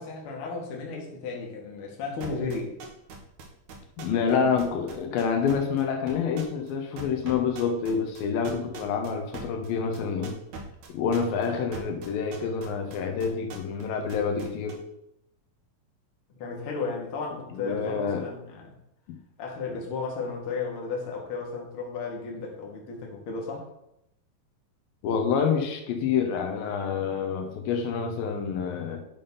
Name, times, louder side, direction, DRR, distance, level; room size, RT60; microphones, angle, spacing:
voice 1, 0.0-2.8 4.3-4.5 16.3-18.7 19.4-23.7, left 4 dB, 45° left, -1 dB, 2.1 m, -34 dB
sound 1, 2.2-4.3 4.6-5.8 6.1-6.7 7.0-13.8 14.1-14.7, right 5 dB, 65° right, 2.4 m, -41 dB
voice 2, 4.0-10.4 10.9-14.8 17.5-18.3 25.0-29.0, left 6 dB, 85° left, 4 dB, 2.8 m, -27 dB
10.5 x 3.8 x 5.4 m, 0.80 s
omnidirectional pair, 4.0 m